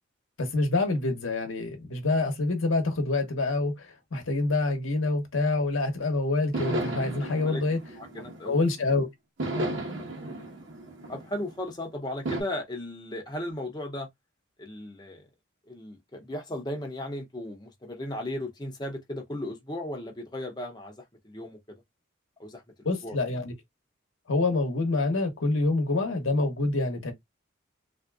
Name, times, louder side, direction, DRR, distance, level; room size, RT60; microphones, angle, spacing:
voice 1, 0.4-7.8 8.5-9.1 22.8-23.5 24.3-27.1, left 2 dB, 75° left, 0.9 m, -26 dB
sound 1, 6.5-8.8 9.4-11.7 12.2-12.4, right 1 dB, 60° right, 1.0 m, -34 dB
voice 2, 7.2-7.6 8.0-8.6 11.1-14.1 14.6-15.3 15.7-21.8 22.4-23.2, left 1 dB, 20° left, 0.5 m, -36 dB
3.4 x 2.6 x 2.2 m
head